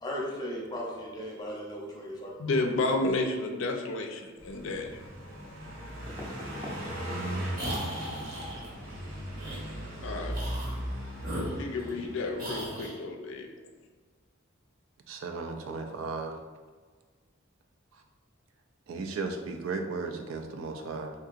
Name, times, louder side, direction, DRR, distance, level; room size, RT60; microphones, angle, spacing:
voice 1, 0.0-2.5, equal, 20° left, -3 dB, 0.6 m, -37 dB
voice 2, 2.4-5.0 10.0-10.3 11.6-13.5, left 2 dB, 65° left, 3 dB, 0.4 m, -31 dB
Car passing by, 4.4-12.8, right 1 dB, 90° right, 0.9 m, -38 dB
sound 1, 4.5-4.6 6.1-6.8 7.1-7.5 7.8-8.0 10.9-11.0 11.3-11.5 11.8-11.9, equal, 15° right, 0.6 m, -45 dB
sound 2, 7.5-8.7 9.4-9.6 10.3-10.8 11.2-12.1 12.4-13.0, equal, 45° right, 0.8 m, -37 dB
voice 3, 15.1-16.4 18.9-21.1, right 4 dB, 70° right, 5 dB, 0.4 m, -35 dB
3.5 x 2.7 x 2.4 m, 1.5 s
head